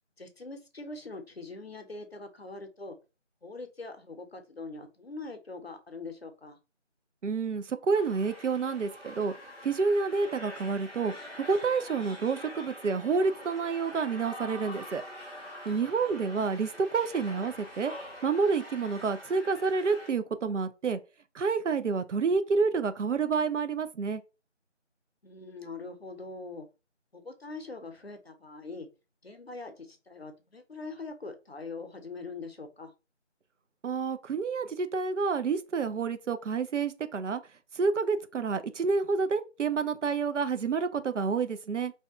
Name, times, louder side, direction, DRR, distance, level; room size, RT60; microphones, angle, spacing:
voice 1, 0.2-3.0 3.4-6.6 15.7-15.9 25.2-26.7 27.1-28.9 29.2-32.9, left 3 dB, 55° left, 0.6 m, -42 dB
voice 2, 7.2-9.3 9.6-15.0 15.7-17.9 18.2-21.0 21.3-24.2 33.8-37.4 37.7-41.9, right 5 dB, 75° right, 0.5 m, -29 dB
sound 1, 7.9-20.1, equal, 55° right, 1.2 m, -45 dB
2.7 x 2.1 x 3.5 m
figure-of-eight pair, 175°, 36 cm